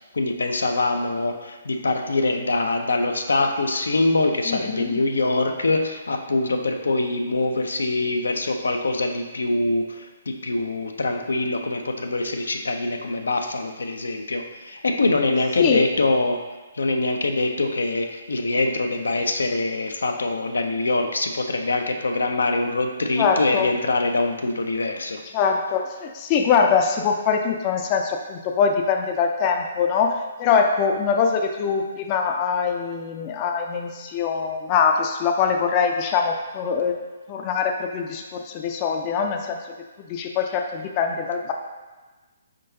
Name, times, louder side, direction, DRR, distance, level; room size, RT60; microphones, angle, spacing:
voice 1, 0.1-16.4 16.7-25.2, left 2 dB, 90° left, 4 dB, 0.5 m, -24 dB
voice 2, 4.5-5.0 15.6-15.9 23.2-23.7 25.3-36.9 37.3-39.6 40.1-41.5, left 6 dB, 30° left, 3 dB, 0.4 m, -23 dB
4.5 x 3.7 x 2.7 m, 1.2 s
hypercardioid pair, 145°, 0 cm